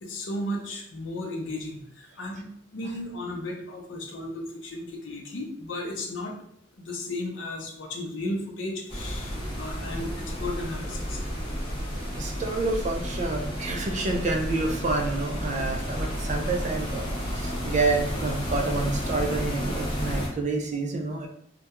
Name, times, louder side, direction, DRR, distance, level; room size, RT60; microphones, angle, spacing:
voice 1, 0.0-6.3 6.8-11.2, left 1 dB, 75° left, 1 dB, 0.6 m, -35 dB
sound 1, 8.9-20.3, equal, 30° left, 0.7 m, -31 dB
voice 2, 12.2-21.3, right 3 dB, 35° right, 2 dB, 0.3 m, -28 dB
2.2 x 2.2 x 2.8 m, 0.67 s
head